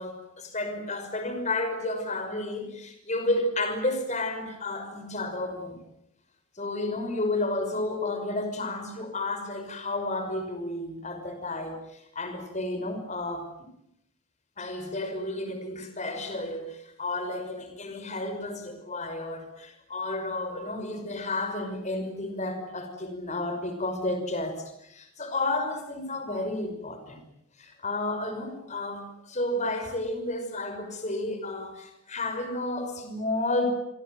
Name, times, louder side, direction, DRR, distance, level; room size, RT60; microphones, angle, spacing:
voice 1, 0.0-5.8 6.6-13.7 14.6-27.2 27.6-33.7, left 2 dB, 30° left, 7 dB, 5.7 m, -32 dB
28.5 x 24.5 x 7.9 m, 0.79 s
head